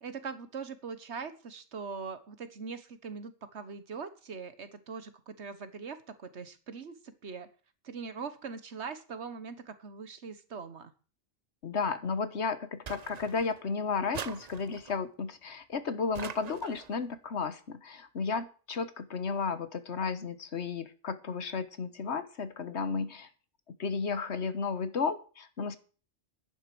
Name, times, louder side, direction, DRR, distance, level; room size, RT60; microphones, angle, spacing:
voice 1, 0.0-7.5 7.8-10.9, right 5 dB, 70° right, 12 dB, 1.5 m, -41 dB
voice 2, 11.6-23.3 23.7-25.8, left 5 dB, 65° left, 12 dB, 1.5 m, -33 dB
sound 1, 12.9-13.6 14.1-15.0 16.1-17.0, right 7 dB, 45° right, 0.6 m, -43 dB
10.5 x 10.0 x 6.0 m, 0.37 s
omnidirectional pair, 1.2 m